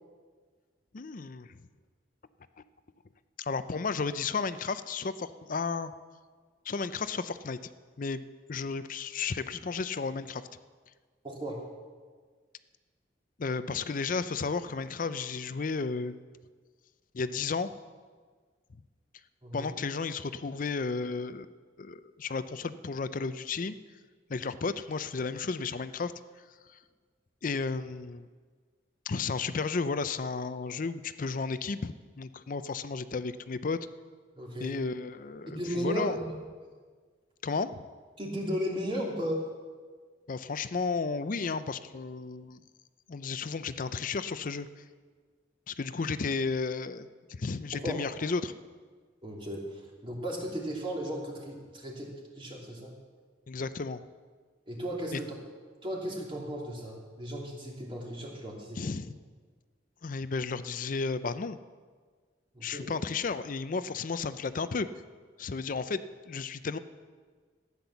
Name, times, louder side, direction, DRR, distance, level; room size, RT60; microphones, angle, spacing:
voice 1, 0.9-1.5 3.4-5.9 6.7-7.6 8.0-8.2 8.5-10.4 13.4-16.2 17.1-17.7 19.5-21.5 21.8-23.7 24.3-26.1 26.7-26.8 27.4-28.3 29.1-33.8 34.6-36.2 37.4-37.8 40.3-42.6 43.1-44.8 45.7-48.5 53.5-54.0 55.1-55.2 58.8-59.1 60.0-61.6 62.6-64.9 65.4-66.8, left 4 dB, 50° left, 13 dB, 0.5 m, -33 dB
voice 2, 11.2-11.6 19.4-19.7 34.4-34.8 35.5-36.4 38.2-39.4 47.7-48.0 49.2-52.9 54.7-55.3 55.8-58.9 62.5-62.9, equal, 30° right, -1 dB, 2.6 m, -35 dB
14.5 x 9.6 x 7.0 m, 1.5 s
head